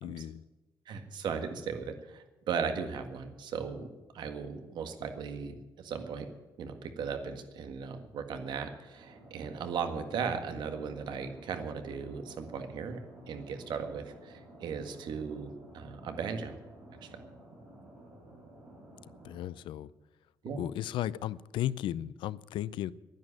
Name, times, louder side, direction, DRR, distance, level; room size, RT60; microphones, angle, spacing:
voice 1, 0.0-0.4 19.2-19.9 20.6-22.9, left 12 dB, 80° left, 19 dB, 0.5 m, -35 dB
voice 2, 0.9-3.9 4.1-6.3 6.6-13.0 13.3-16.6 17.0-17.1 20.4-20.6, right 6 dB, 60° right, 7 dB, 1.8 m, -37 dB
sound 1, 8.9-19.4, right 1 dB, 20° right, 4.4 m, -53 dB
11.0 x 10.5 x 9.8 m, 1.1 s
cardioid pair, 160°, 8 cm